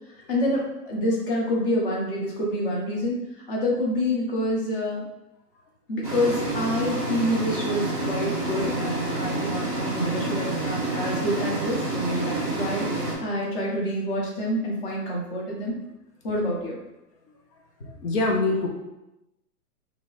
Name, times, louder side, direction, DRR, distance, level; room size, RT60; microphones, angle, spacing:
voice 1, 0.3-3.2 3.5-5.0 5.9-15.7 16.2-16.8, left 1 dB, 35° left, -4 dB, 1.0 m, -27 dB
sound 1, 6.0-13.1, right 2 dB, 15° left, 0.6 m, -28 dB
voice 2, 18.0-18.7, left 2 dB, 75° left, 0 dB, 0.9 m, -23 dB
3.0 x 3.0 x 4.0 m, 0.94 s
hypercardioid pair, 165°, 47 cm